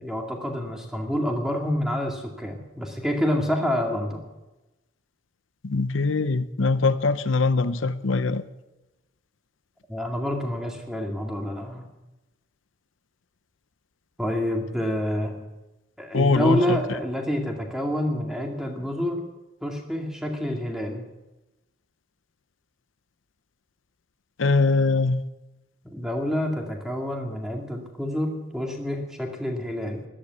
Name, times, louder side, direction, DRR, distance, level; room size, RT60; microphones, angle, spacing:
voice 1, 0.0-4.2 9.9-11.9 14.2-15.3 16.0-19.2 19.6-21.0 25.8-30.1, equal, 5° right, 1 dB, 2.3 m, -28 dB
voice 2, 5.6-8.4 16.1-16.8 24.4-25.2, left 3 dB, 90° left, 13 dB, 0.7 m, -22 dB
13.5 x 12.0 x 8.1 m, 1.0 s
head